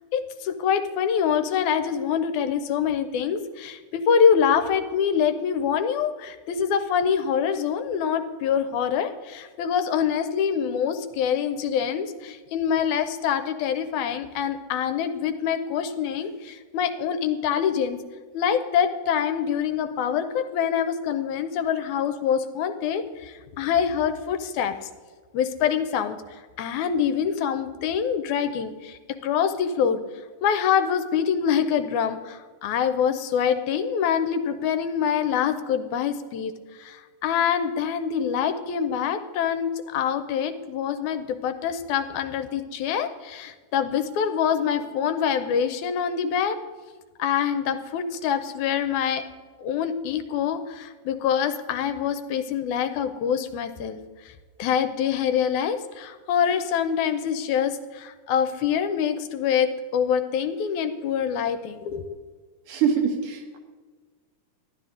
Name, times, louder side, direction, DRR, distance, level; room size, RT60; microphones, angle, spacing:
voice 1, 0.1-18.0 18.3-24.8 25.3-26.2 26.6-30.0 30.4-36.5 36.8-46.6 47.2-49.2 49.6-54.0 54.6-62.2, left 8 dB, 80° left, 10 dB, 2.0 m, -25 dB
voice 2, 62.7-63.6, right 7 dB, 85° right, 3 dB, 2.9 m, -24 dB
12.5 x 11.0 x 3.7 m, 1.5 s
omnidirectional pair, 3.6 m